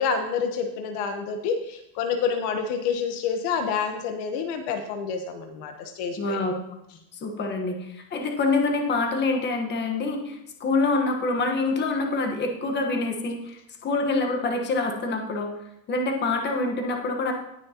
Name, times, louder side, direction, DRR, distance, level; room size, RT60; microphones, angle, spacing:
voice 1, 0.0-6.4, left 6 dB, 50° left, 6 dB, 1.1 m, -28 dB
voice 2, 6.2-6.5 7.2-15.5 15.9-17.3, left 3 dB, 20° left, 2 dB, 1.2 m, -26 dB
18.5 x 6.3 x 2.9 m, 0.83 s
cardioid pair, 160°, 50 cm